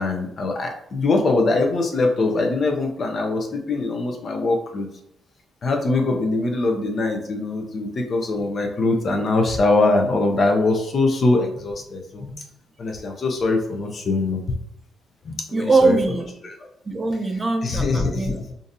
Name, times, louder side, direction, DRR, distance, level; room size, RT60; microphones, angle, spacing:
voice 1, 0.0-4.9 5.6-12.4 12.8-14.4 15.2-16.0 16.4-16.5 17.6-18.5, left 3 dB, 45° left, 3 dB, 0.6 m, -22 dB
voice 2, 15.5-16.3 16.9-18.3, right 3 dB, 25° right, 6 dB, 0.5 m, -21 dB
3.8 x 2.6 x 2.6 m, 0.76 s
cardioid pair, 90°, 0 cm